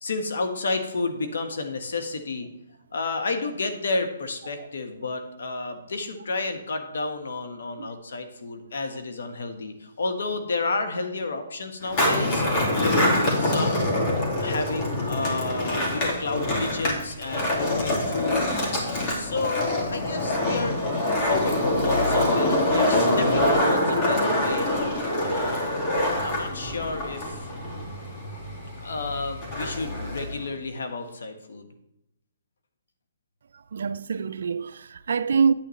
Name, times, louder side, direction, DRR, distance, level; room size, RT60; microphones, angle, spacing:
voice 1, 0.0-2.5 2.9-13.9 14.4-18.5 19.1-20.8 21.1-24.9 25.2-25.8 26.2-27.5 28.8-31.7, left 3 dB, 75° left, 1.3 m, -31 dB
Skateboard, 11.8-30.5, left 1 dB, 30° left, 2.3 m, -25 dB
voice 2, 33.7-35.5, right 6 dB, 70° right, 0.4 m, -25 dB
8.9 x 8.6 x 3.2 m
hypercardioid pair, 145°, 0 cm